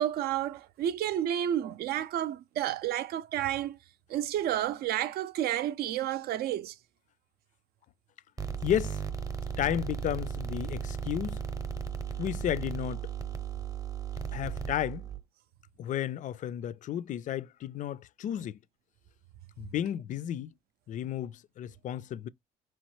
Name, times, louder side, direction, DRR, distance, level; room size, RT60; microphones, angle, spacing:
voice 1, 0.0-3.8 4.1-6.7, right 11 dB, 70° right, 0.5 m, -31 dB
sound 1, 8.4-15.2, right 7 dB, 20° right, 0.7 m, -36 dB
voice 2, 8.6-9.0 9.6-11.4 12.2-13.1 14.3-15.1 15.8-18.6 19.6-20.5 20.9-22.3, left 11 dB, 50° left, 0.4 m, -33 dB
4.7 x 3.0 x 3.1 m
cardioid pair, 110°, 17 cm